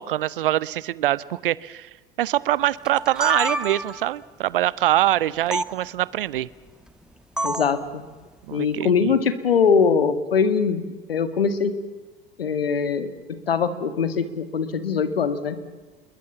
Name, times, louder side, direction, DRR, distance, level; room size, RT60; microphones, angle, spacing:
voice 1, 0.0-1.9 2.2-6.5 8.5-9.1, right 14 dB, 60° right, 22 dB, 0.8 m, -24 dB
sound 1, 2.8-4.1 5.5-5.7 7.4-7.8, right 1 dB, ahead, 1.3 m, -27 dB
voice 2, 7.4-8.0 8.5-11.8 12.4-15.6, left 6 dB, 70° left, 11 dB, 2.1 m, -22 dB
27.0 x 22.0 x 7.1 m, 1.3 s
figure-of-eight pair, 80°, 30 cm